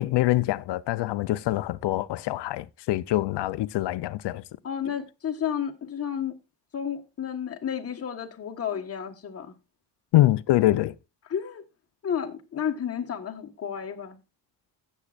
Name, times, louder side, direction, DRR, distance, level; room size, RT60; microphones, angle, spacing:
voice 1, 0.0-4.4 10.1-10.9, left 15 dB, 85° left, 0.6 m, -24 dB
voice 2, 4.6-6.3 6.7-9.5 11.3-11.6 12.0-14.2, left 8 dB, 35° left, 1.3 m, -31 dB
16.5 x 7.4 x 2.5 m
cardioid pair, 165°, 40 cm